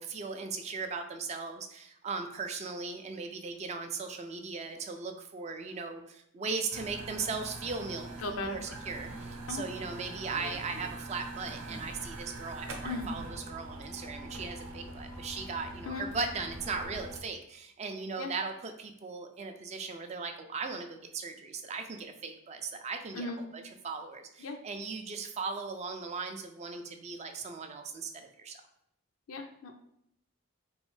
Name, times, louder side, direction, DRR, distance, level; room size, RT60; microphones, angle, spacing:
voice 1, 0.0-28.1 28.4-28.6, right 4 dB, 30° right, 6 dB, 0.3 m, -38 dB
sound 1, 6.7-17.2, right 2 dB, 85° right, 0.6 m, -43 dB
voice 2, 8.2-8.7 9.5-9.6 12.8-13.1 15.9-16.1 18.2-18.3 23.1-23.4 24.4-24.6 29.3-29.7, left 3 dB, 80° left, 4 dB, 0.4 m, -37 dB
3.5 x 3.1 x 3.1 m, 0.75 s
head